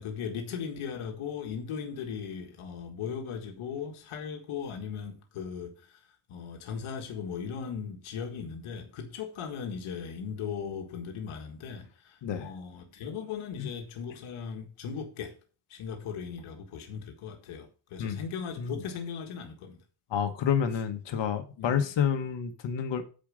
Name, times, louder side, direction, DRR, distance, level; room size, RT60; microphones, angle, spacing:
voice 1, 0.0-15.4 15.7-19.8 21.6-21.8, left 6 dB, 80° left, 1.7 m, -38 dB
voice 2, 20.1-23.0, left 8 dB, 60° left, 1.4 m, -29 dB
8.8 x 4.9 x 6.2 m
cardioid pair, 130°, 49 cm